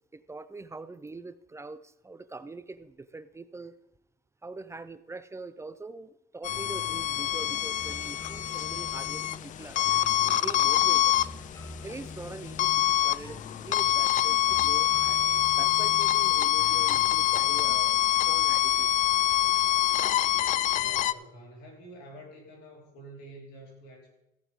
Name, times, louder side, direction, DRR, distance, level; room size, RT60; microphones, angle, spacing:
voice 1, 0.1-3.8 4.4-10.0 10.4-11.2 11.8-15.2 15.5-18.0 18.3-18.9, right 3 dB, 15° right, 13 dB, 0.5 m, -43 dB
sound 1, 6.4-21.1, left 13 dB, 50° left, 0.4 m, -25 dB
sound 2, 6.5-19.5, left 3 dB, 20° left, 1.5 m, -47 dB
voice 2, 20.7-24.2, right 1 dB, 90° left, -1 dB, 4.2 m, -48 dB
14.5 x 11.0 x 3.6 m, 0.87 s
cardioid pair, 110°, 17 cm